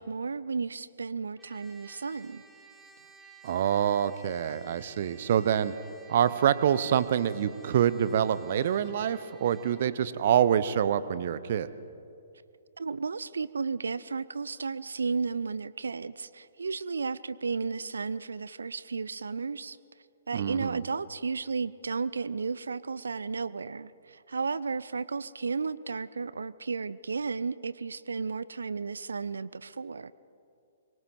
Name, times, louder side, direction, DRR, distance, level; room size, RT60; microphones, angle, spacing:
voice 1, 0.0-2.4 12.8-19.8 20.3-30.1, right 4 dB, 65° right, 18 dB, 0.5 m, -33 dB
Trumpet, 1.4-9.9, right 3 dB, 5° right, 2.2 m, -54 dB
voice 2, 3.4-5.7 6.1-11.7 20.3-20.8, right 9 dB, 45° right, 15 dB, 0.9 m, -26 dB
26.0 x 23.5 x 4.5 m, 2.5 s
figure-of-eight pair, 120°, 0 cm